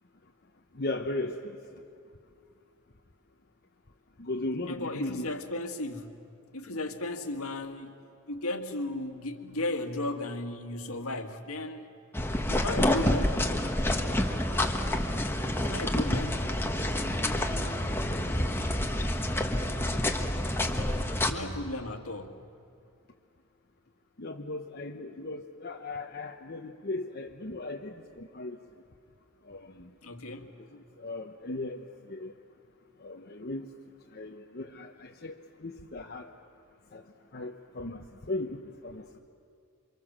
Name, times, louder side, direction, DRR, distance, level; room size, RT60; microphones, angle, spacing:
voice 1, 0.7-1.5 4.2-5.3 24.2-28.6 29.5-29.9 31.0-32.3 33.0-33.7 34.1-36.3 36.9-37.0 37.3-39.0, left 2 dB, 45° left, 2 dB, 1.0 m, -37 dB
voice 2, 4.7-6.2 6.5-7.9 8.3-11.9 12.5-13.4 15.6-16.5 21.2-22.4 30.0-30.5, left 2 dB, 75° left, 5 dB, 2.0 m, -35 dB
sound 1, 12.1-21.3, left 1 dB, 10° left, 1.4 m, -28 dB
28.5 x 25.0 x 7.5 m, 2.4 s
head